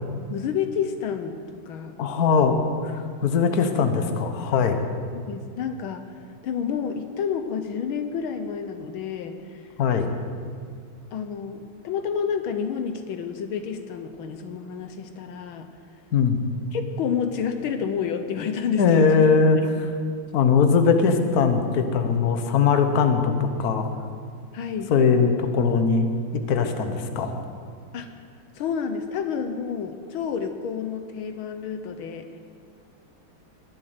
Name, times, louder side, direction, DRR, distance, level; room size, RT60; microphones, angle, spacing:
voice 1, 0.3-1.4 1.7-2.0 5.1-6.0 6.4-9.6 11.1-15.7 16.7-19.1 24.5-24.9 27.9-28.1 28.5-32.3, left 7 dB, 75° left, 8 dB, 1.6 m, -29 dB
voice 2, 2.0-4.8 9.8-10.1 16.1-16.4 18.8-19.9 20.3-23.9 24.9-26.1 26.5-27.4, left 5 dB, 50° left, 7 dB, 1.4 m, -20 dB
21.5 x 7.6 x 8.0 m, 2.2 s
omnidirectional pair, 2.3 m